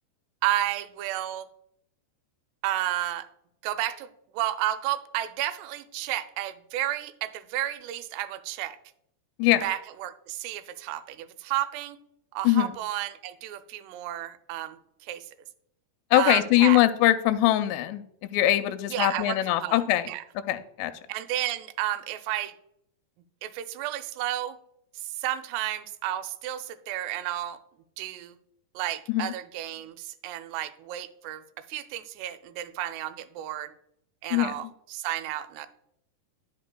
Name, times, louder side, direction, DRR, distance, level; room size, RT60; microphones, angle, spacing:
voice 1, 0.4-1.5 2.6-3.3 3.6-8.8 9.6-12.0 12.3-15.3 16.2-16.8 18.9-19.8 20.1-20.2 21.1-22.5 23.4-24.6 25.0-27.6 28.0-28.3 28.8-31.4 31.7-33.7 34.2-35.7, right 13 dB, 85° right, 11 dB, 2.7 m, -32 dB
voice 2, 16.1-18.0 18.3-20.1 20.5-20.9 29.1-29.3 34.3-34.5, left 14 dB, 90° left, 9 dB, 2.7 m, -22 dB
12.0 x 5.4 x 2.2 m, 0.74 s
omnidirectional pair, 4.8 m